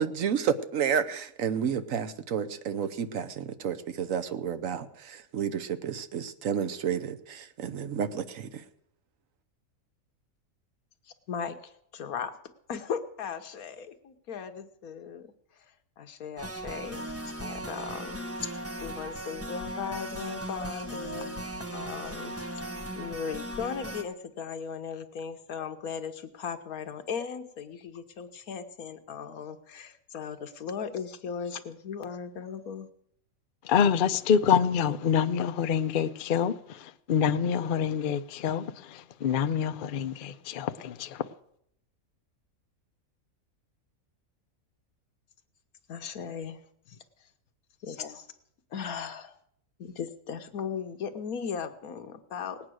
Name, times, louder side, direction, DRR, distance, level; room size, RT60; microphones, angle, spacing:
voice 1, 0.0-8.6, right 7 dB, 70° right, 1.2 m, -31 dB
voice 2, 11.3-12.3 12.7-15.3 16.0-17.1 17.4-18.2 18.8-21.5 21.7-22.6 23.0-32.9 45.9-47.0 47.8-48.3 48.7-49.3 49.8-52.6, left 6 dB, 80° left, 1.5 m, -37 dB
sound 1, 16.4-24.0, right 1 dB, 10° right, 1.0 m, -38 dB
voice 3, 33.6-41.3, left 7 dB, 55° left, 0.6 m, -26 dB
18.5 x 8.8 x 6.3 m
omnidirectional pair, 1.5 m